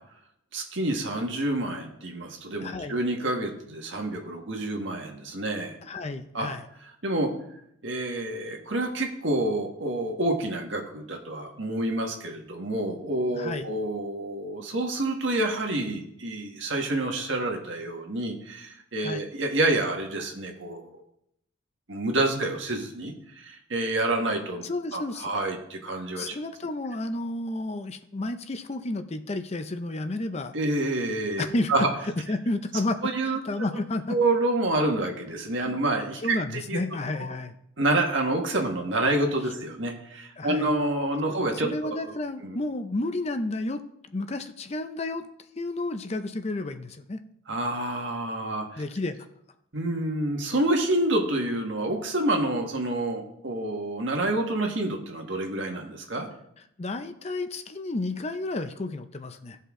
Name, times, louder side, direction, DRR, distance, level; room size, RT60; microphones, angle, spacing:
voice 1, 0.5-5.8 6.3-6.5 7.0-7.3 7.8-21.0 21.9-26.4 30.5-31.9 33.0-33.4 34.1-36.4 36.7-36.8 37.2-37.3 37.8-42.2 42.4-42.6 47.5-48.8 49.7-56.3, right 2 dB, 70° right, 2 dB, 1.6 m, -28 dB
voice 2, 2.6-3.0 5.8-6.6 13.3-13.7 19.0-19.3 24.6-25.3 26.2-30.5 31.4-31.9 32.3-34.2 35.6-35.8 36.2-37.5 40.4-40.7 41.6-45.3 45.5-47.2 48.8-49.3 56.8-59.6, left 2 dB, 30° left, 9 dB, 0.5 m, -31 dB
16.0 x 5.5 x 3.7 m, 0.73 s
head